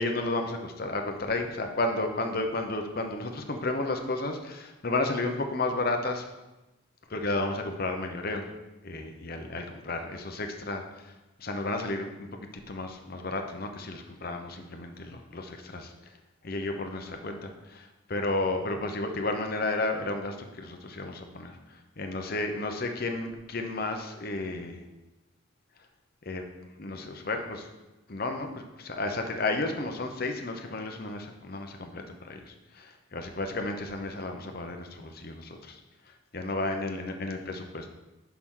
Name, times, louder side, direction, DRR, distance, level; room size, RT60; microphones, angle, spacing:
voice 1, 0.0-6.2 7.1-8.5 8.8-16.2 16.4-24.8 26.2-26.4 26.8-27.7 28.1-35.8 36.0-37.9, left 2 dB, 45° left, 5 dB, 0.8 m, -32 dB
10.5 x 5.8 x 3.8 m, 1.0 s
head